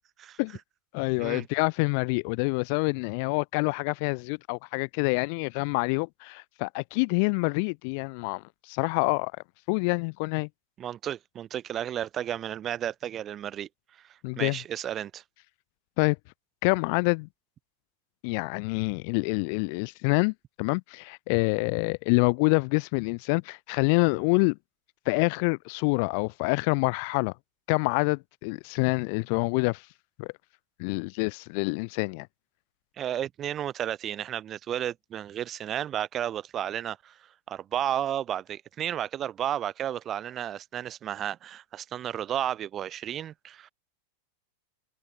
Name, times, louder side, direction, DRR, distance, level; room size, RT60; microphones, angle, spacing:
voice 1, 0.9-8.4 8.7-9.3 9.7-10.5 14.2-14.6 16.0-16.2 16.6-17.3 18.2-24.6 25.1-27.3 27.7-29.8 30.2-30.3 30.8-32.3, left 34 dB, 50° left, 0.9 m, -26 dB
voice 2, 10.8-13.7 14.4-15.2 33.0-37.2 37.5-43.7, right 10 dB, 30° right, 3.5 m, -32 dB
figure-of-eight pair, 95°, 0 cm